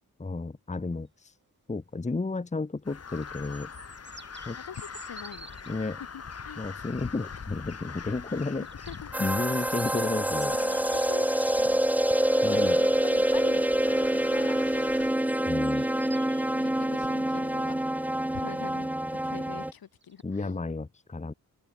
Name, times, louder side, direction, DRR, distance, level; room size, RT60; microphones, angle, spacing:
voice 1, 0.2-1.3 1.7-3.7 4.5-4.6 5.7-6.0 6.6-8.7 9.2-10.6 12.4-12.8 15.5-15.9 20.2-21.3, left 3 dB, 20° left, 1.3 m, -32 dB
Crow, 2.8-15.1, left 6 dB, 40° left, 1.8 m, -43 dB
sound 1, 2.9-5.8 8.6-11.7 14.6-16.5 20.0-20.2, right 3 dB, 30° right, 7.8 m, -50 dB
voice 2, 4.6-5.5 6.1-6.6 8.9-9.1 10.5-11.8 12.3-15.0 15.3-15.7 16.5-17.9 18.3-18.9 19.2-20.6, left 8 dB, 75° left, 7.9 m, -44 dB
sound 2, 9.1-19.7, right 1 dB, 5° right, 0.9 m, -26 dB
open air
cardioid pair, 85°, 36 cm